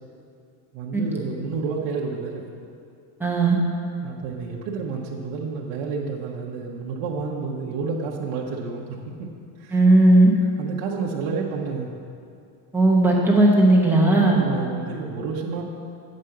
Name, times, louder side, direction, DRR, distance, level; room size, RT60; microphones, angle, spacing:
voice 1, 0.7-2.5 4.0-8.9 9.2-9.3 9.6-9.8 10.6-11.9 14.2-15.6, right 5 dB, 55° right, -3 dB, 1.1 m, -30 dB
voice 2, 3.2-3.6 9.7-10.3 12.7-14.4, right 2 dB, 5° right, -4 dB, 0.8 m, -16 dB
8.4 x 5.4 x 7.7 m, 2.4 s
cardioid pair, 175°, 49 cm